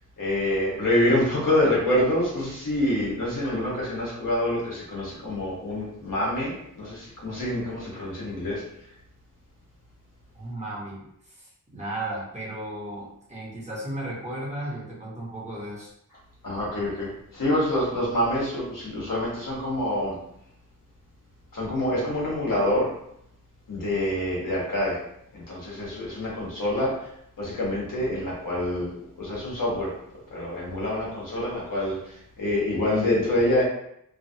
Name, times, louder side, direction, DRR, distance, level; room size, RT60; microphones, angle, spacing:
voice 1, 0.2-8.6 16.4-20.2 21.5-22.9 23.7-25.0 25.3-27.1 27.4-29.9 30.3-33.6, left 1 dB, 80° left, -6 dB, 1.2 m, -26 dB
voice 2, 10.3-15.9, right 1 dB, 20° right, -6 dB, 1.0 m, -35 dB
3.0 x 2.5 x 2.7 m, 0.76 s
wide cardioid pair, 105°, 32 cm